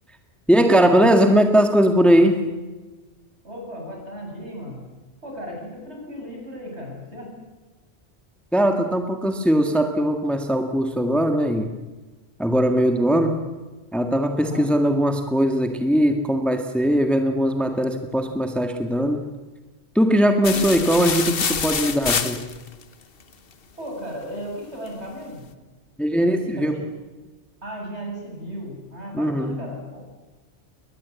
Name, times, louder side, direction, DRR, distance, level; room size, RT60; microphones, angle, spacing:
voice 1, 0.5-2.4 8.5-11.7 12.4-13.3 13.9-19.2 19.9-22.5 26.0-26.8 29.1-29.6, equal, ahead, 5 dB, 1.7 m, -20 dB
voice 2, 3.4-4.8 5.2-7.3 14.4-14.7 20.5-20.7 23.8-25.5 26.3-26.9 27.6-30.0, equal, 70° right, 0 dB, 7.8 m, -35 dB
sound 1, 20.4-22.8, left 6 dB, 55° left, 1.3 m, -26 dB
22.0 x 20.0 x 8.4 m, 1.2 s
omnidirectional pair, 1.2 m